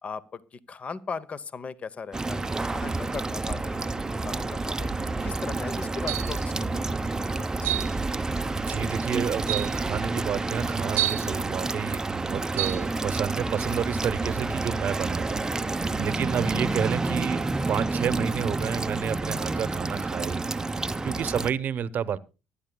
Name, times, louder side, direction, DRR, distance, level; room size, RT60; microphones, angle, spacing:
voice 1, 0.0-4.9 5.2-7.5 15.9-16.1 21.0-21.3, left 5 dB, 35° left, 0.9 m, -38 dB
sound 1, 2.1-21.5, right 3 dB, 15° right, 0.6 m, -29 dB
sound 2, 6.1-6.4 7.6-7.9 8.9-9.0 9.5-9.8 11.0-11.3 12.6-12.8, right 15 dB, 85° right, 0.6 m, -28 dB
voice 2, 8.5-20.7 21.0-22.2, right 8 dB, 55° right, 0.8 m, -30 dB
24.0 x 10.0 x 2.3 m
cardioid pair, 90°, 4 cm